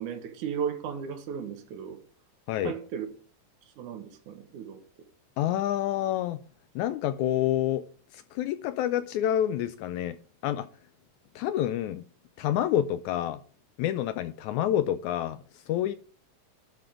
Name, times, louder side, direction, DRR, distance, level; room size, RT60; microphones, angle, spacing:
voice 1, 0.0-2.0 2.6-3.1 3.8-4.8, right 7 dB, 70° right, 2.5 m, -35 dB
voice 2, 5.4-6.4 6.8-7.8 8.1-10.2 10.4-10.7 11.4-12.0 12.4-13.4 13.8-15.9, left 11 dB, 80° left, 1.8 m, -28 dB
12.0 x 5.8 x 4.9 m
omnidirectional pair, 3.8 m